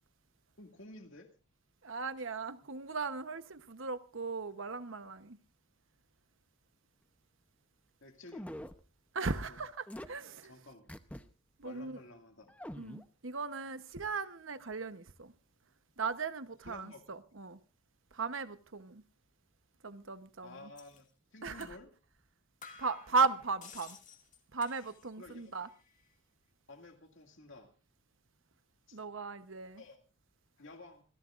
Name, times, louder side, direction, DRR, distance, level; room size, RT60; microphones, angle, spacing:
voice 1, 0.6-1.3 8.0-8.6 9.3-9.6 10.4-11.0 11.6-12.5 16.7-17.2 20.4-21.9 25.2-25.5 26.7-27.7 28.9-29.0 29.8-30.0 30.6-31.0, left 2 dB, 65° left, 2.2 m, -53 dB
voice 2, 1.8-5.4 9.1-10.5 11.6-12.0 12.8-15.3 16.0-17.6 18.1-19.0 19.8-20.5 21.4-21.7 22.8-24.0 24.5-25.7 28.9-29.8, right 4 dB, 65° right, 1.0 m, -37 dB
sound 1, 8.3-8.8 9.9-10.1 10.9-11.2 11.6-11.7 12.5-13.0, equal, 5° left, 0.7 m, -44 dB
sound 2, 20.8-21.0 21.6-21.8 22.1-22.2 22.6-25.2 25.5-26.1, left 6 dB, 35° left, 2.2 m, -54 dB
26.5 x 15.5 x 2.5 m
head